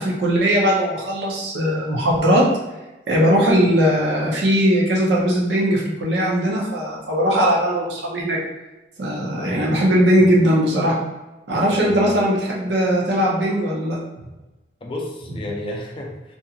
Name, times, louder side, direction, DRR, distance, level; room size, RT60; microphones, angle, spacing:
voice 1, 0.0-2.4 3.1-8.4 9.0-11.0 11.5-14.0, equal, 70° right, -3 dB, 0.7 m, -19 dB
voice 2, 9.4-9.7 11.7-12.1 14.8-16.4, left 1 dB, 30° left, 0 dB, 0.4 m, -32 dB
2.8 x 2.6 x 2.3 m, 1.0 s
head